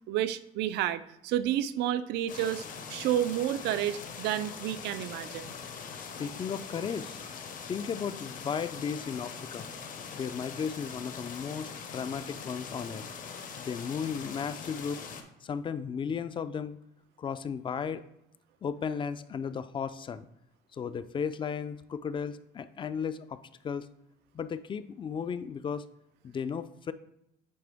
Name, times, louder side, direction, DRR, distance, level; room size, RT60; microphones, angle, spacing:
voice 1, 0.1-2.6 2.9-5.5, right 11 dB, 80° right, 14 dB, 0.4 m, -30 dB
sound 1, 2.3-15.2, left 6 dB, 50° left, 0.8 m, -42 dB
voice 2, 6.0-7.2 7.7-9.7 10.1-13.1 13.6-15.0 15.4-16.8 17.2-18.0 18.6-20.3 20.7-23.9 24.3-25.9 26.2-26.9, left 6 dB, 30° left, 14 dB, 0.3 m, -35 dB
8.6 x 3.7 x 3.4 m, 0.80 s
cardioid pair, 110°, 17 cm